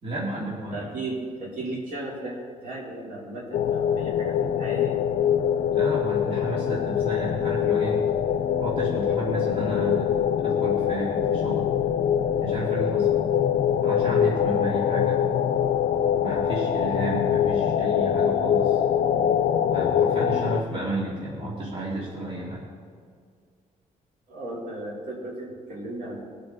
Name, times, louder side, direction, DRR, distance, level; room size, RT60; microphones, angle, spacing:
voice 1, 0.0-0.9 5.7-8.1 8.6-11.7 12.4-13.1 13.8-15.2 16.2-18.8 19.7-22.6, right 1 dB, 40° right, -6 dB, 2.7 m, -32 dB
voice 2, 0.7-5.0 24.3-26.2, right 2 dB, 70° right, -4 dB, 3.9 m, -35 dB
sound 1, 3.5-20.6, left 9 dB, 65° left, 0.5 m, -24 dB
21.5 x 7.8 x 4.1 m, 2.1 s
wide cardioid pair, 175°, 15 cm